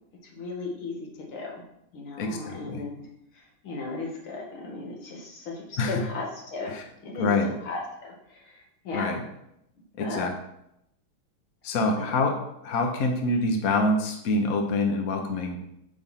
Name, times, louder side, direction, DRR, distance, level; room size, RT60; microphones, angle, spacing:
voice 1, 0.3-1.5 1.9-3.0 3.3-6.7 7.0-7.3 7.6-9.3 10.0-10.3 12.0-12.1, left 3 dB, 80° left, -1 dB, 2.4 m, -36 dB
voice 2, 2.2-2.8 5.8-6.0 6.7-6.8 7.2-7.5 8.9-9.2 10.0-10.3 11.6-12.3 12.6-15.6, left 2 dB, 50° left, 3 dB, 1.2 m, -26 dB
8.8 x 3.4 x 5.7 m, 0.79 s
omnidirectional pair, 2.3 m